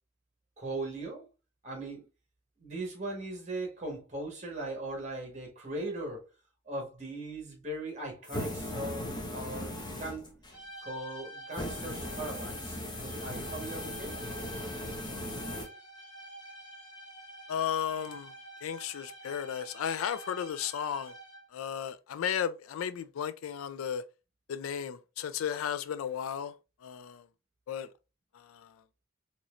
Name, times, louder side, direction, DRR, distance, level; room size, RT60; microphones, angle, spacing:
voice 1, 0.6-1.3 1.6-2.0 2.6-6.3 6.7-10.4 10.8-14.2, right 2 dB, 35° right, 1.3 m, -39 dB
sound 1, 8.2-10.6 11.5-15.7, left 1 dB, 20° left, 0.7 m, -38 dB
sound 2, 10.5-21.6, right 1 dB, 50° left, 1.8 m, -48 dB
voice 2, 17.5-18.3 18.6-21.1 21.5-24.0 24.5-26.5 26.8-27.2 27.7-27.9 28.4-28.7, left 8 dB, 90° left, 0.3 m, -34 dB
4.1 x 3.0 x 2.4 m
head